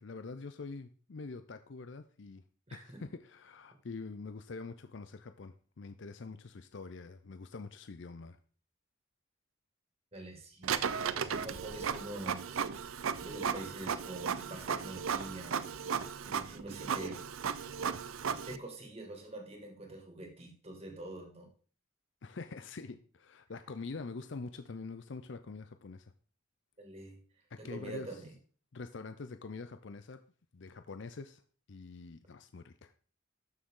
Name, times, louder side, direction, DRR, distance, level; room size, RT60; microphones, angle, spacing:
voice 1, 0.0-2.4 2.7-8.4 22.2-26.1 27.5-28.1 28.7-30.2 30.5-31.4 31.7-32.9, left 4 dB, 60° left, 9 dB, 0.5 m, -45 dB
voice 2, 2.7-3.0 10.1-10.8 11.1-12.6 13.2-15.7 16.2-17.2 18.5-21.5 26.8-27.2 27.6-28.3, right 1 dB, 30° right, 2 dB, 2.3 m, -45 dB
Printer, 10.6-18.6, right 7 dB, 85° right, 0.6 m, -35 dB
13.0 x 6.4 x 3.8 m, 0.42 s
head